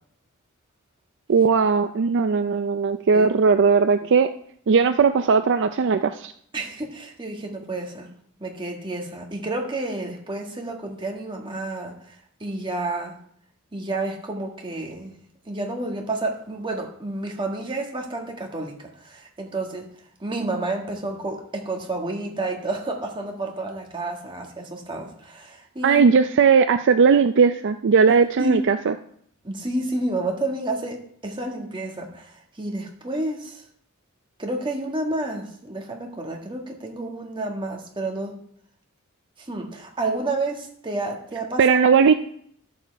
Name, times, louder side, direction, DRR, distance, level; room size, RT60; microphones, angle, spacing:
voice 1, 1.3-4.3 4.7-6.3 25.8-28.9 41.6-42.1, right 5 dB, 60° right, 9 dB, 0.4 m, -18 dB
voice 2, 6.5-8.1 8.4-13.2 13.7-15.2 15.4-19.9 20.2-26.0 28.4-28.6 29.4-33.6 34.4-38.4 39.4-41.8, right 2 dB, 25° right, 1 dB, 1.7 m, -30 dB
11.5 x 7.1 x 4.6 m, 0.65 s
head